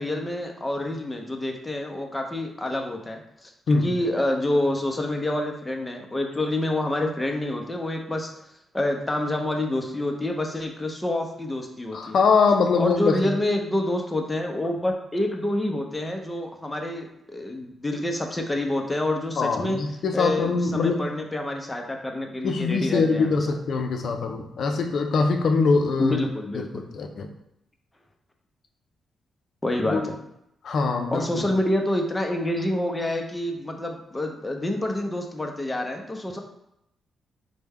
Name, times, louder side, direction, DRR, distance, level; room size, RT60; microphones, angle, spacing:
voice 1, 0.0-8.3 8.7-12.2 12.8-19.8 20.1-23.4 26.0-26.8 29.6-30.1 31.1-36.4, left 1 dB, 20° left, 3 dB, 0.7 m, -27 dB
voice 2, 11.9-13.3 19.4-21.1 22.4-26.2 26.9-27.3 29.9-30.1 30.6-31.4, left 4 dB, 70° left, 4 dB, 0.5 m, -23 dB
4.4 x 2.2 x 3.5 m, 0.81 s
cardioid pair, 65°, 0 cm